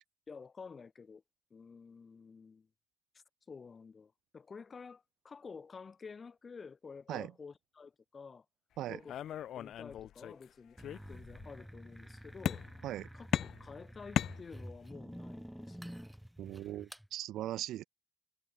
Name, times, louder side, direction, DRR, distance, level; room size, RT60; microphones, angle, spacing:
voice 1, 0.3-1.2 1.5-2.7 3.1-8.4 8.9-9.1 9.5-10.8 11.1-12.7 13.1-16.0, left 5 dB, 35° left, 6.5 m, -51 dB
sound 1, 9.1-10.4 10.8-11.5 12.5-13.0 13.3-14.9, left 11 dB, 70° left, 0.5 m, -37 dB
sound 2, 10.8-17.1, equal, ahead, 5.5 m, -49 dB
voice 2, 16.4-17.9, right 13 dB, 80° right, 0.8 m, -39 dB
cardioid pair, 90°, 0 cm